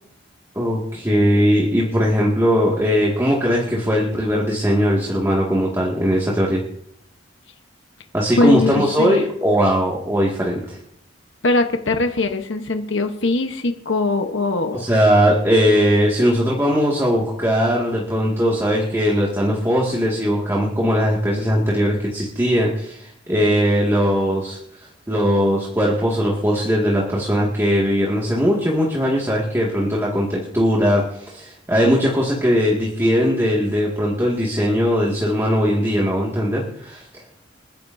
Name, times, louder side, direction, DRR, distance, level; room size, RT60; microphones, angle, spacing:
voice 1, 0.5-6.6 8.1-10.8 14.7-37.0, equal, 15° right, -4 dB, 2.0 m, -19 dB
voice 2, 8.4-9.2 11.4-14.8, left 2 dB, 70° left, 6 dB, 1.1 m, -21 dB
28.5 x 10.5 x 2.7 m, 0.71 s
head